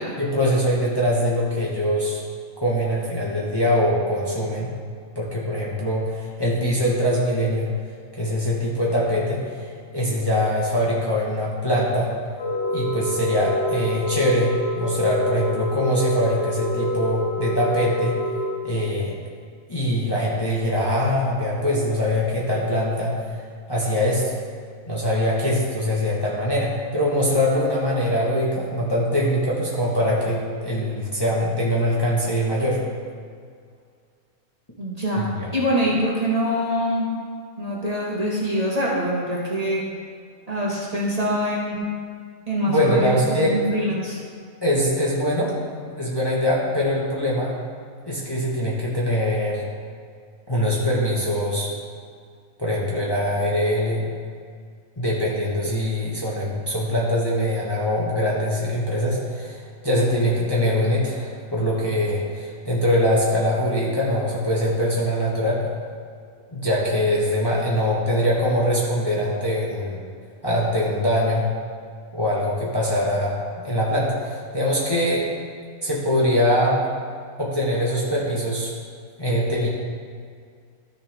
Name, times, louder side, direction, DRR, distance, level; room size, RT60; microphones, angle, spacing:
voice 1, 0.2-2.2 2.6-4.7 5.1-7.7 8.1-9.7 9.9-12.1 12.7-18.1 18.6-19.2 19.7-23.4 23.7-24.3 24.9-32.8 35.2-35.5 42.7-43.6 44.6-45.5 46.0-47.5 48.1-49.6 50.5-51.7 52.6-54.0 55.0-65.6 66.5-70.0 70.4-71.5 72.1-73.4 73.6-75.3 75.8-76.8 77.4-78.7 79.2-79.7, equal, 15° left, -5 dB, 1.4 m, -23 dB
sound 1, 12.4-18.5, left 1 dB, 55° left, 1.2 m, -26 dB
voice 2, 34.8-35.3 35.5-37.1 37.6-39.8 40.5-41.8 42.5-44.2, equal, 25° right, -5 dB, 1.6 m, -24 dB
13.0 x 6.8 x 3.6 m, 2.1 s
omnidirectional pair, 1.5 m